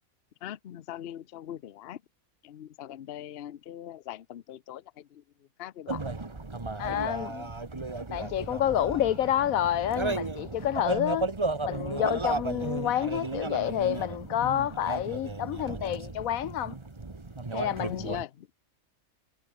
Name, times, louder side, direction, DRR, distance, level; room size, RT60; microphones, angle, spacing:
voice 1, 0.4-2.0 2.4-6.0 6.9-7.1 17.8-18.5, left 11 dB, 55° left, 0.8 m, -41 dB
sound 1, 5.9-18.2, right 3 dB, 20° right, 1.3 m, -34 dB
voice 2, 6.8-7.5 8.1-11.3 11.6-16.8 17.5-18.0, left 11 dB, 85° left, 1.2 m, -29 dB
omnidirectional pair, 1.4 m